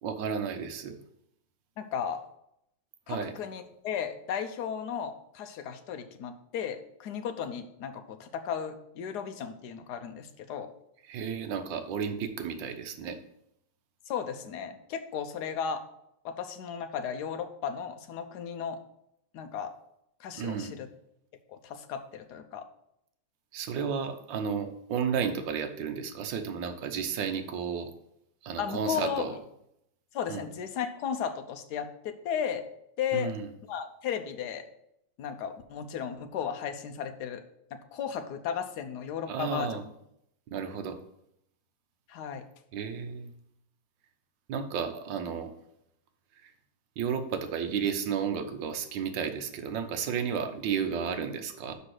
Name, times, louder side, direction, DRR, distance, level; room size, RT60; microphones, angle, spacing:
voice 1, 0.0-1.0 3.1-3.3 11.1-13.2 20.4-20.7 23.5-27.9 28.4-29.4 30.3-30.4 33.1-33.5 39.3-39.8 40.5-41.0 42.7-43.3 44.5-45.5 46.4-46.5 47.0-51.7, right 7 dB, 80° right, 7 dB, 1.5 m, -32 dB
voice 2, 1.8-2.2 3.1-10.7 14.1-15.8 16.2-18.8 19.3-19.7 20.2-20.9 21.5-22.6 28.6-29.3 30.1-32.6 33.0-33.3 33.7-34.6 35.2-37.4 37.7-39.8 42.1-42.4, left 8 dB, 65° left, 8 dB, 1.2 m, -35 dB
5.9 x 5.3 x 6.3 m, 0.77 s
omnidirectional pair, 2.0 m